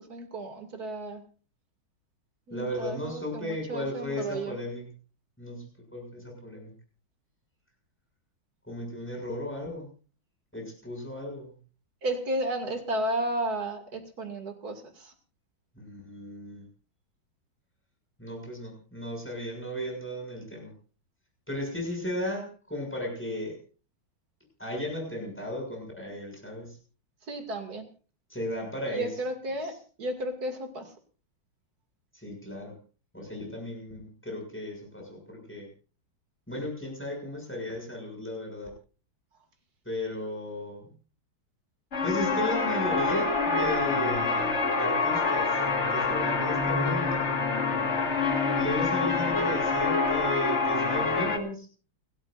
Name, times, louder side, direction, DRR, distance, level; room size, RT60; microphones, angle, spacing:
voice 1, 0.1-1.2 2.5-4.6 12.0-15.1 27.3-27.9 28.9-29.7 30.0-30.9, right 1 dB, 50° right, 5 dB, 2.9 m, -33 dB
voice 2, 2.5-4.9 5.4-6.7 8.6-9.9 10.5-11.5 15.7-16.6 18.2-20.7 21.5-23.6 24.6-26.8 28.3-29.2 29.6-29.7 32.1-32.8 33.1-35.7 36.5-38.7 39.8-40.9 42.0-45.6 45.9-47.3 48.6-51.7, left 1 dB, 5° left, 0 dB, 6.8 m, -35 dB
sound 1, 41.9-51.4, left 4 dB, 35° left, 2.0 m, -26 dB
29.5 x 13.0 x 2.6 m, 0.37 s
omnidirectional pair, 2.2 m